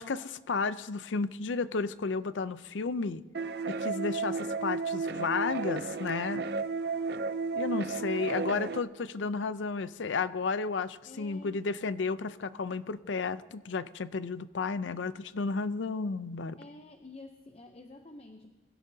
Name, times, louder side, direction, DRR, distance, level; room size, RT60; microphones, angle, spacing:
voice 1, 0.0-3.2 3.7-6.5 7.5-16.6, left 4 dB, 90° left, 15 dB, 0.5 m, -32 dB
sound 1, 3.3-8.8, right 4 dB, 60° right, 0.5 m, -33 dB
voice 2, 11.1-11.7 16.6-18.5, left 2 dB, 35° left, 5 dB, 0.7 m, -49 dB
22.5 x 16.5 x 2.8 m, 1.2 s
head